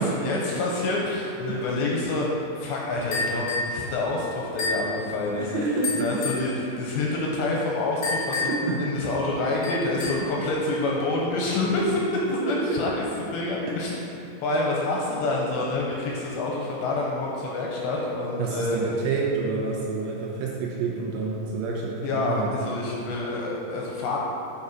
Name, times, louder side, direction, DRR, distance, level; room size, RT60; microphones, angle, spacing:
voice 1, 0.0-5.7 6.0-8.5 8.8-12.2 12.5-13.9 14.4-18.8 22.0-24.2, left 2 dB, 80° left, -3 dB, 2.7 m, -27 dB
sound 1, 3.1-3.8 4.6-4.9 5.8-6.5 8.0-8.7 9.6-10.3, left 3 dB, 50° left, 1.6 m, -29 dB
voice 2, 5.4-6.3 8.5-8.8 12.4-12.8 18.4-22.5 22.9-23.1, right 4 dB, 80° right, -3 dB, 2.6 m, -28 dB
8.3 x 4.7 x 5.4 m, 2.7 s
omnidirectional pair, 5.6 m